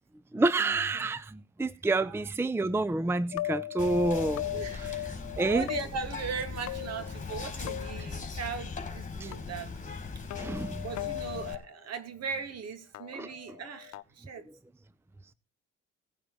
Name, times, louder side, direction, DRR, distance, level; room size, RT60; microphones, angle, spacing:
voice 1, 0.3-4.5 5.4-5.7 9.2-9.3 10.4-10.8 13.1-13.3, right 2 dB, 10° right, 0.6 m, -28 dB
sound 1, 3.3-5.8 6.7-7.4 7.7-8.1 9.3-9.4 10.3-11.6 12.9-14.0, left 14 dB, 65° left, 0.9 m, -37 dB
Whispering, 3.8-11.5, left 4 dB, 25° left, 3.5 m, -40 dB
voice 2, 4.5-9.7 10.3-10.4 10.8-14.4, right 5 dB, 55° right, 2.6 m, -38 dB
18.0 x 9.4 x 3.5 m
supercardioid pair, 65°, 30 cm